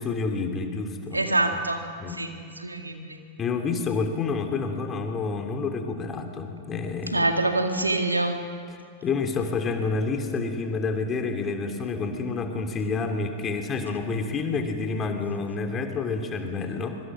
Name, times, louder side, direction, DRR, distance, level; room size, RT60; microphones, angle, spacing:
voice 1, 0.0-1.2 2.0-2.1 3.4-7.3 9.0-17.0, left 4 dB, 25° left, 5 dB, 2.9 m, -28 dB
voice 2, 1.1-1.8 2.1-3.2 7.1-8.4, right 2 dB, 85° right, 5 dB, 1.9 m, -25 dB
25.0 x 23.0 x 6.3 m, 2.3 s
figure-of-eight pair, 90°, 0 cm